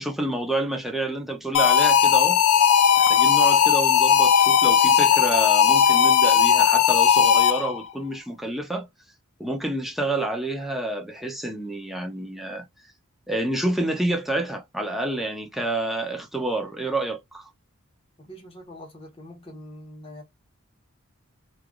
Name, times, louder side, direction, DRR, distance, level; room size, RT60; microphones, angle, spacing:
voice 1, 0.0-2.4 3.0-8.9 9.4-12.7 13.3-17.5, right 1 dB, ahead, 0.6 m, -28 dB
sound 1, 1.5-7.8, left 8 dB, 85° left, 0.4 m, -17 dB
voice 2, 18.2-20.2, equal, 25° left, 1.0 m, -43 dB
3.2 x 2.4 x 2.2 m
head